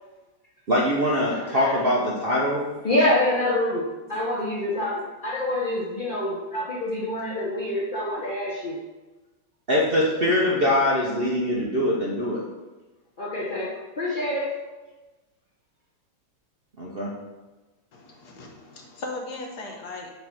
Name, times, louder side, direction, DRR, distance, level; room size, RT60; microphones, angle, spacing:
voice 1, 0.7-2.6 9.7-12.4 16.8-17.1, left 1 dB, 50° right, -4 dB, 0.6 m, -23 dB
voice 2, 1.3-1.8 2.8-8.8 13.2-14.6, left 1 dB, 85° left, -4 dB, 0.4 m, -26 dB
voice 3, 17.9-20.1, left 2 dB, 55° left, 1 dB, 1.5 m, -37 dB
5.5 x 4.0 x 6.0 m, 1.2 s
omnidirectional pair, 2.2 m